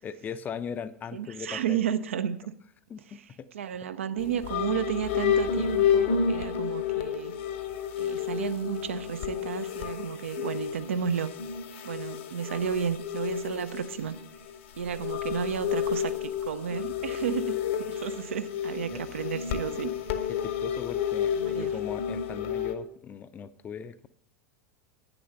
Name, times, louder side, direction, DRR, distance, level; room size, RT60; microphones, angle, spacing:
voice 1, 0.0-1.8 2.9-3.5 18.9-19.0 20.3-24.1, left 7 dB, 25° left, 0.5 m, -39 dB
voice 2, 1.1-2.4 3.1-3.2 3.5-7.4 8.0-11.3 11.9-14.2 14.8-19.9 21.3-21.8, right 8 dB, 65° right, 0.6 m, -32 dB
sound 1, 4.2-22.8, left 8 dB, 55° left, 0.9 m, -31 dB
9.4 x 6.9 x 5.5 m
figure-of-eight pair, 85°, 7 cm